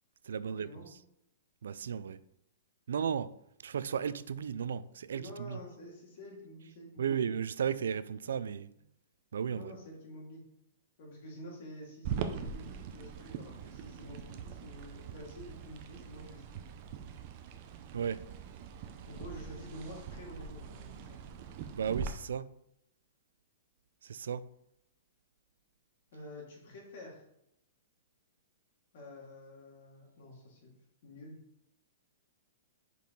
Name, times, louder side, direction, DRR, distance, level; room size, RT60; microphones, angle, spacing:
voice 1, 0.2-0.8 1.6-2.2 2.9-5.6 7.0-8.7 9.3-9.7 17.9-18.3 21.8-22.6 24.0-24.5, right 7 dB, 85° right, 0.3 m, -35 dB
voice 2, 5.2-7.2 9.5-10.4 11.0-16.6 19.1-21.2 26.1-27.2 28.9-30.7 31.0-31.4, left 1 dB, 50° left, 2.6 m, -49 dB
sound 1, 12.0-22.1, right 7 dB, 35° right, 0.6 m, -42 dB
5.4 x 4.7 x 4.6 m
hypercardioid pair, 165°, 0 cm